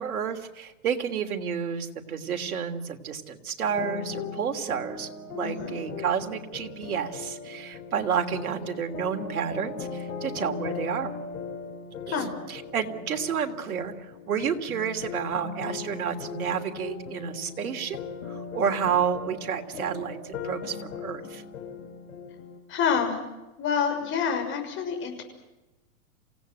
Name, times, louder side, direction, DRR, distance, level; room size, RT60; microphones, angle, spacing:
voice 1, 0.0-11.1 12.1-18.0 18.3-21.4, right 7 dB, 75° right, 5 dB, 3.2 m, -30 dB
sound 1, 3.6-22.6, left 5 dB, 65° left, 7.2 m, -38 dB
voice 2, 5.4-5.7 12.1-12.3 22.7-23.2 23.6-25.2, left 7 dB, 25° left, 5 dB, 6.4 m, -27 dB
28.0 x 17.0 x 9.3 m, 1.0 s
hypercardioid pair, 135°, 44 cm